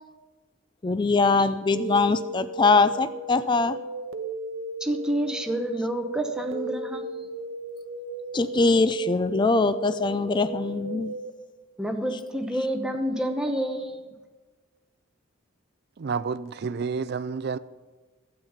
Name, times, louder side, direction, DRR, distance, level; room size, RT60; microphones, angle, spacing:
voice 1, 0.8-3.8 8.3-11.1, left 3 dB, 25° left, 0.4 m, -22 dB
sound 1, 1.7-11.3, right 2 dB, 75° right, 0.7 m, -35 dB
voice 2, 4.8-7.2 11.8-14.0, right 1 dB, 5° right, 1.0 m, -28 dB
voice 3, 16.0-17.6, right 5 dB, 55° right, 0.4 m, -30 dB
12.5 x 8.9 x 5.7 m
head